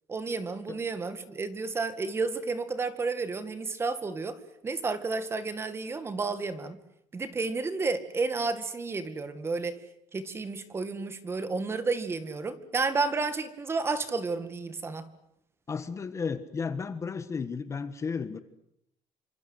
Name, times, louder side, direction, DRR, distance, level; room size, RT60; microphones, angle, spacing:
voice 1, 0.1-6.8 7.1-9.8 10.1-15.1, right 4 dB, 20° right, 12 dB, 2.1 m, -31 dB
voice 2, 15.7-18.4, left 5 dB, 25° left, 12 dB, 1.4 m, -33 dB
28.5 x 25.5 x 8.1 m, 0.77 s
cardioid pair, 165°, 13 cm